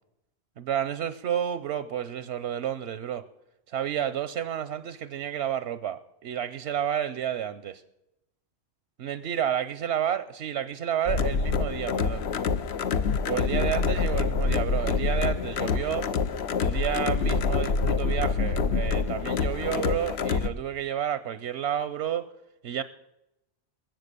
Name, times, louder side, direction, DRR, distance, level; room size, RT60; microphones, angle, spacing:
voice 1, 0.6-3.2 3.7-7.8 9.0-12.2 13.2-16.1 16.6-22.3 22.6-22.8, right 10 dB, 85° right, 1.0 m, -30 dB
sound 1, 11.1-20.5, left 5 dB, 75° left, 1.1 m, -26 dB
21.5 x 8.0 x 6.7 m
omnidirectional pair, 1.1 m